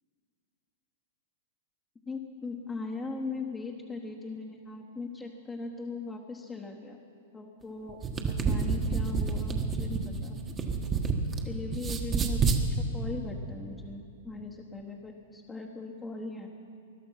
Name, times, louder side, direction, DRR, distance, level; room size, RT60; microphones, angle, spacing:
voice 1, 2.1-7.0 7.3-8.0 8.3-10.4 11.4-16.5, left 3 dB, 15° left, -1 dB, 1.3 m, -39 dB
sound 1, 7.9-11.4 11.7-12.6, right 5 dB, 25° right, 1.5 m, -28 dB
21.5 x 11.5 x 5.8 m, 2.5 s
hypercardioid pair, 120°, 0 cm